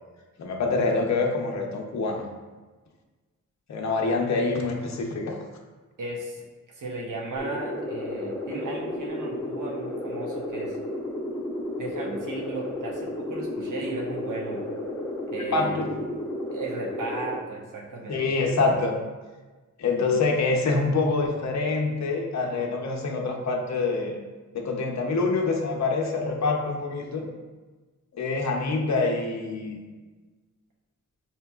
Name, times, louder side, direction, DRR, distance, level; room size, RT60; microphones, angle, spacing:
voice 1, 0.4-2.2 3.7-5.4 15.5-15.9 18.1-18.9 19.8-24.2 24.5-27.3 28.2-29.8, left 3 dB, 60° left, 1 dB, 0.6 m, -26 dB
voice 2, 6.0-10.8 11.8-14.6 15.3-15.7 16.5-18.3 18.7-18.8, right 2 dB, 75° right, -2 dB, 0.8 m, -35 dB
sound 1, 7.4-17.4, left 1 dB, 10° left, 0.6 m, -33 dB
5.6 x 2.8 x 2.3 m, 1.3 s
wide cardioid pair, 120°, 31 cm